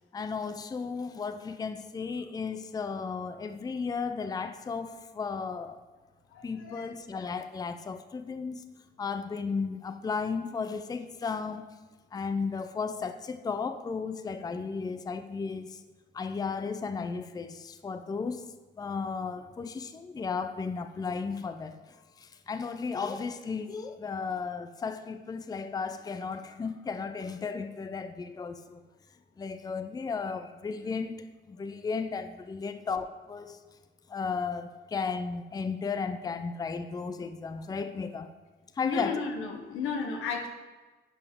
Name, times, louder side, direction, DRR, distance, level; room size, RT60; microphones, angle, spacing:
voice 1, 0.1-5.8 6.4-11.7 12.1-15.8 16.1-28.8 29.4-33.6 34.1-38.3 38.8-39.2, left 5 dB, 20° left, 0.4 m, -34 dB
voice 2, 6.6-6.9 38.8-40.5, left 5 dB, 85° left, 1.1 m, -33 dB
10.5 x 4.9 x 3.6 m
cardioid pair, 90°, 20 cm